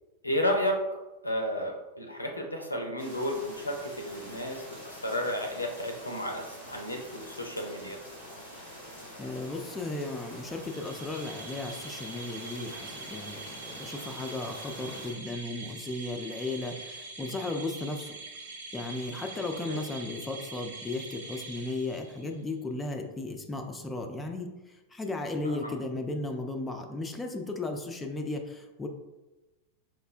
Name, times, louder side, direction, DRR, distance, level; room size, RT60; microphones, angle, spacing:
voice 1, 0.2-0.8 1.2-8.0 19.7-19.8 25.4-25.7, left 1 dB, 85° left, 3 dB, 0.4 m, -32 dB
sound 1, 3.0-15.1, equal, 85° right, 1.3 m, -46 dB
voice 2, 9.2-18.2 18.7-24.5 24.9-28.9, left 2 dB, 10° left, 3 dB, 0.3 m, -35 dB
sound 2, 10.5-22.4, right 3 dB, 60° right, 0.5 m, -44 dB
4.2 x 2.1 x 2.4 m, 1.1 s
figure-of-eight pair, 90°, 0 cm